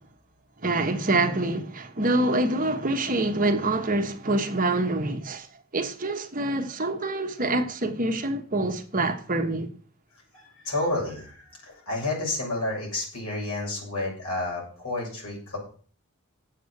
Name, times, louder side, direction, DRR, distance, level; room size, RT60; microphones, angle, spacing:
voice 1, 0.6-5.5 5.7-9.7, right 2 dB, 40° right, 1.2 m, -26 dB
voice 2, 10.3-15.6, left 2 dB, 70° left, 6.7 m, -30 dB
8.3 x 7.7 x 8.4 m
head